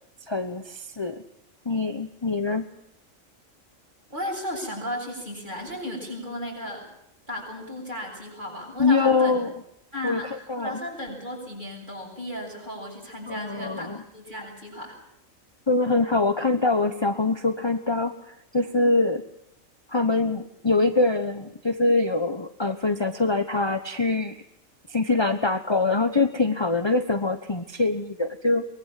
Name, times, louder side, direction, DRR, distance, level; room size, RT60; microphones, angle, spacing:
voice 1, 0.3-1.2 1.6-2.7 8.8-9.5 10.0-10.8 13.3-14.0 15.7-18.1 18.5-19.2 19.9-24.3 24.9-28.6, left 3 dB, 20° left, 7 dB, 1.1 m, -24 dB
voice 2, 4.1-6.9 7.3-9.4 9.9-15.0, equal, 35° right, 0 dB, 8.2 m, -35 dB
23.5 x 21.0 x 7.6 m, 0.76 s
omnidirectional pair, 1.4 m